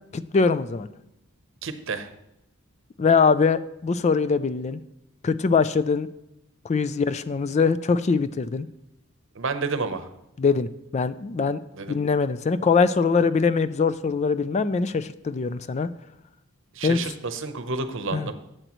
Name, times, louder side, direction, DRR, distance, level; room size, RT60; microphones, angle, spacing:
voice 1, 0.1-0.9 3.0-4.8 5.2-6.1 6.6-8.7 10.4-11.6 11.9-15.9 16.8-17.0 18.1-18.3, left 5 dB, 30° left, 14 dB, 0.3 m, -22 dB
voice 2, 1.6-2.1 9.3-10.1 11.7-12.0 16.7-18.4, right 4 dB, 65° right, 10 dB, 0.8 m, -30 dB
12.0 x 7.9 x 3.0 m, 0.87 s
head